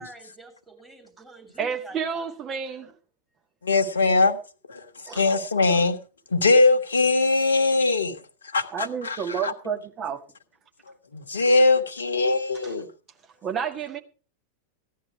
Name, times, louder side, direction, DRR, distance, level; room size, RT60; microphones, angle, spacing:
voice 1, 0.0-2.2, right 2 dB, 5° right, 3.3 m, -47 dB
voice 2, 1.6-2.9 5.1-5.4 8.7-10.2 12.6-12.8 13.2-14.0, right 7 dB, 25° right, 1.8 m, -31 dB
voice 3, 3.6-4.4 4.7-6.0 6.3-8.2 8.5-9.2 9.4-9.5 11.1-12.9, left 3 dB, 70° left, 1.3 m, -21 dB
16.0 x 10.5 x 4.7 m
figure-of-eight pair, 90°, 0 cm